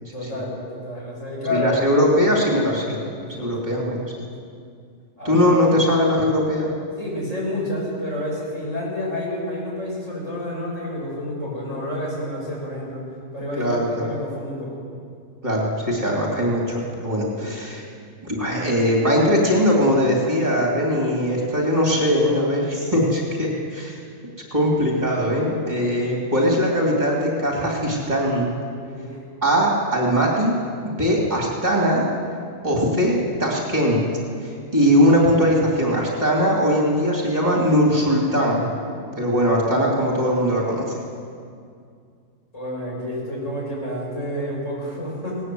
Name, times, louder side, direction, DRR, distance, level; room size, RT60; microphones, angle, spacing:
voice 1, 0.1-1.9 3.3-3.8 5.2-5.5 7.0-13.0 13.3-14.8 17.3-17.8 28.9-29.2 42.5-45.4, left 1 dB, 65° left, -4 dB, 6.9 m, -29 dB
voice 2, 1.5-3.0 3.4-4.2 5.2-6.7 13.6-14.1 15.4-17.8 18.2-24.0 24.5-28.5 29.4-30.5 30.8-32.0 32.6-34.0 34.4-38.7 39.0-40.8, equal, 35° right, -2 dB, 3.1 m, -20 dB
19.0 x 18.0 x 7.8 m, 2.3 s
omnidirectional pair, 1.4 m